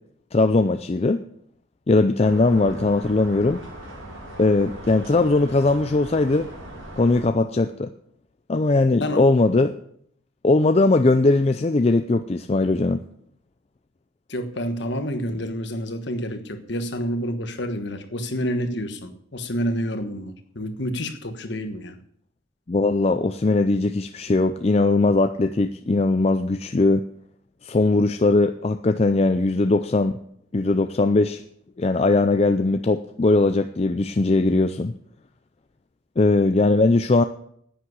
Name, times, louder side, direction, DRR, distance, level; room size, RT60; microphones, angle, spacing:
voice 1, 0.3-1.2 1.9-3.6 4.4-6.5 7.0-7.9 8.5-9.7 10.4-13.0 22.7-27.0 27.6-30.2 30.5-31.4 31.8-34.9 36.2-37.2, left 2 dB, 30° left, 8 dB, 0.4 m, -20 dB
sound 1, 2.2-7.2, right 1 dB, 80° right, 5.7 m, -39 dB
voice 2, 14.3-21.9, equal, 55° left, 7 dB, 1.3 m, -28 dB
10.0 x 8.6 x 7.9 m, 0.68 s
head